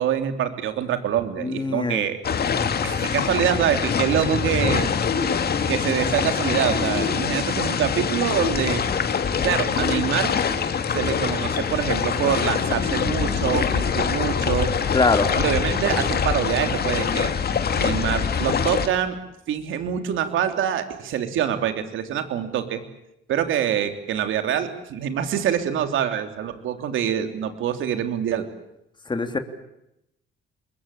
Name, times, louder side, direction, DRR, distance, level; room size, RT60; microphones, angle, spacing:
voice 1, 0.0-2.2 2.8-4.9 5.7-8.8 9.4-10.3 10.9-14.7 15.3-17.3 17.8-19.2 19.5-22.8 23.3-28.4, right 9 dB, 80° right, 7 dB, 3.3 m, -25 dB
voice 2, 1.4-2.0 14.9-15.3 29.1-29.4, left 3 dB, 25° left, 7 dB, 3.0 m, -22 dB
sound 1, 2.2-18.9, left 6 dB, 50° left, 2.4 m, -24 dB
25.5 x 22.0 x 8.5 m, 0.84 s
cardioid pair, 90°, 20 cm